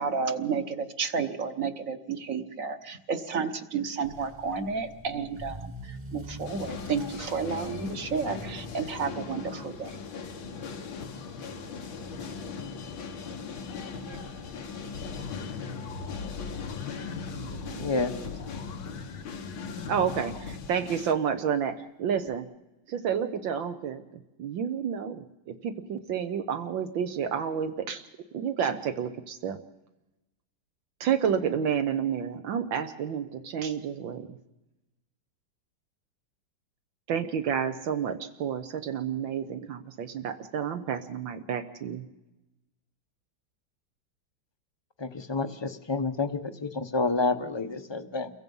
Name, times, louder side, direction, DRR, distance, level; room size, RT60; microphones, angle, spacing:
voice 1, 0.0-9.9, right 5 dB, 45° right, 9 dB, 1.5 m, -31 dB
Motor vehicle (road) / Accelerating revving vroom, 4.0-18.9 19.2-19.6 20.1-20.2 20.5-20.6 20.9-21.0 22.3-22.4, right 1 dB, 20° right, 1.2 m, -48 dB
sound 1, 6.4-21.1, left 5 dB, 90° left, 2.3 m, -39 dB
voice 2, 13.9-14.3 16.9-17.0 17.3-17.9 19.9-22.5 22.9-24.0 24.4-28.0 28.3-29.6 31.0-34.4 37.1-42.0, right 7 dB, 80° right, 6 dB, 1.7 m, -30 dB
sound 2, 14.9-20.7, left 5 dB, 70° left, 1.9 m, -41 dB
voice 3, 17.8-18.1 45.0-48.3, left 3 dB, 25° left, 10 dB, 0.6 m, -29 dB
29.0 x 23.0 x 5.5 m, 0.99 s
omnidirectional pair, 2.1 m